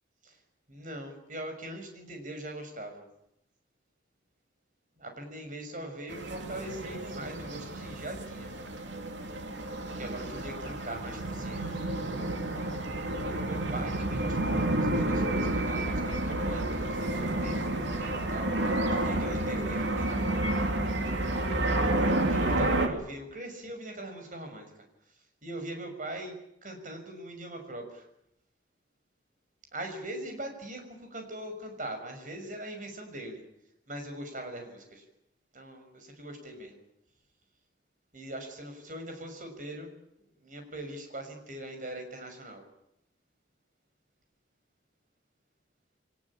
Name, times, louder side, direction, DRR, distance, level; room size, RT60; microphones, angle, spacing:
voice 1, 0.7-3.1 5.0-8.5 9.9-11.8 13.4-18.7 19.0-20.4 22.0-24.7 25.1-28.1 29.7-33.4 33.9-35.1 35.5-36.8 38.1-40.0 40.4-42.6, right 1 dB, 45° right, 5 dB, 6.2 m, -41 dB
sound 1, 6.1-22.9, right 1 dB, 80° right, 3.1 m, -30 dB
23.0 x 20.0 x 8.8 m, 0.78 s
head